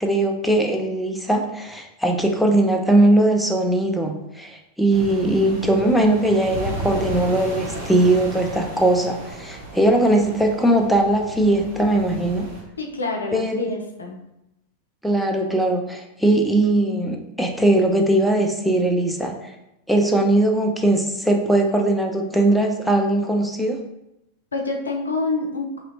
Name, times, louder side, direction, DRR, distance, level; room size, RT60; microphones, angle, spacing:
voice 1, 0.0-12.5 13.3-13.6 15.0-19.5 19.9-23.8, right 1 dB, ahead, 1 dB, 0.3 m, -20 dB
sound 1, 4.9-12.6, right 2 dB, 50° right, 0.9 m, -34 dB
voice 2, 5.2-5.6 12.8-14.2 24.5-25.8, left 3 dB, 75° left, 1 dB, 0.5 m, -27 dB
2.9 x 2.8 x 2.7 m, 0.87 s
figure-of-eight pair, 90°, 0 cm